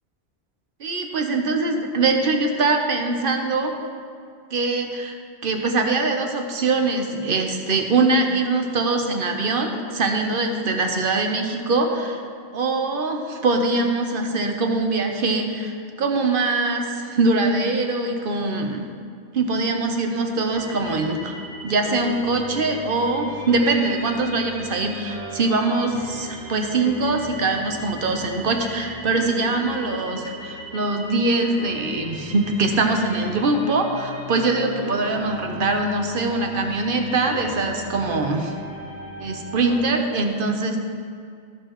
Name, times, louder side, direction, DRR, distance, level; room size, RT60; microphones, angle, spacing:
voice 1, 0.8-3.7 4.5-5.2 5.4-12.2 12.5-18.9 19.3-21.3 21.6-38.5 39.2-40.8, right 3 dB, 55° right, 4 dB, 1.0 m, -23 dB
sound 1, 20.5-39.8, equal, 70° left, 2.1 m, -37 dB
14.0 x 6.7 x 3.0 m, 2.3 s
omnidirectional pair, 1.1 m